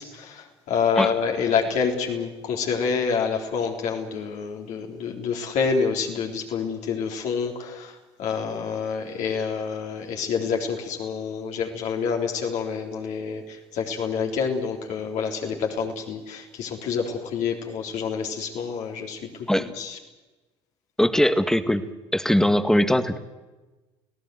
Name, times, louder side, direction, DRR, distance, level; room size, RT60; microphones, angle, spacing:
voice 1, 0.0-19.2 19.8-20.0, left 6 dB, 60° left, 1 dB, 3.9 m, -27 dB
voice 2, 21.0-21.8 22.1-23.2, equal, 5° left, 10 dB, 1.9 m, -20 dB
30.0 x 17.5 x 7.9 m, 1.2 s
hypercardioid pair, 60°, 14 cm